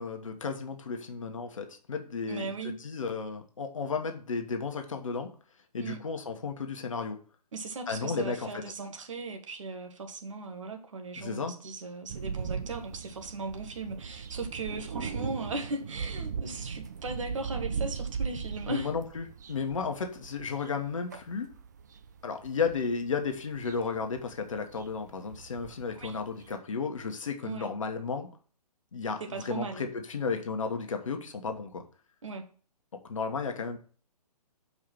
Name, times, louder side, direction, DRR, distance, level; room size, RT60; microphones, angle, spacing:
voice 1, 0.0-5.3 5.7-7.2 7.9-8.6 11.2-11.5 18.6-21.5 22.2-28.3 28.9-31.8 33.1-33.8, left 5 dB, 50° left, 5 dB, 1.3 m, -33 dB
voice 2, 2.3-2.8 5.8-6.0 7.5-18.9 25.9-26.2 27.4-27.7 29.2-29.8 32.2-32.4, right 3 dB, 50° right, 6 dB, 1.4 m, -38 dB
sound 1, 12.1-26.5, right 6 dB, 30° right, 0.4 m, -38 dB
6.7 x 4.8 x 5.8 m, 0.42 s
figure-of-eight pair, 135°, 21 cm